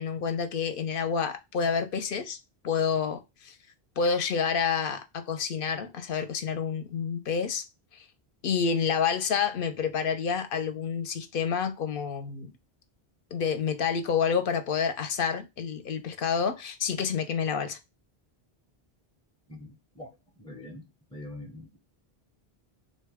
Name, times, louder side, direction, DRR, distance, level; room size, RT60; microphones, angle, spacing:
voice 1, 0.0-2.4 2.6-3.6 4.0-7.6 7.9-8.0 8.4-12.5 13.3-17.8, left 6 dB, 65° left, 0.7 m, -28 dB
voice 2, 19.5-20.1 20.4-20.9 21.1-21.8, left 1 dB, 5° left, 0.4 m, -43 dB
3.8 x 2.1 x 3.4 m
omnidirectional pair, 1.1 m